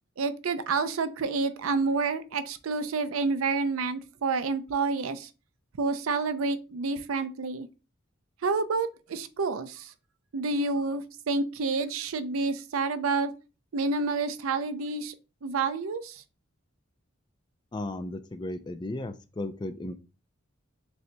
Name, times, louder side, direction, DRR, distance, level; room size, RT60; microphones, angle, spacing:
voice 1, 0.2-5.3 5.8-7.7 8.4-9.9 10.3-13.3 13.7-15.1 15.4-16.2, right 4 dB, 85° right, 0.5 m, -29 dB
voice 2, 17.7-20.0, left 2 dB, 20° left, 0.3 m, -35 dB
6.6 x 2.8 x 2.2 m
head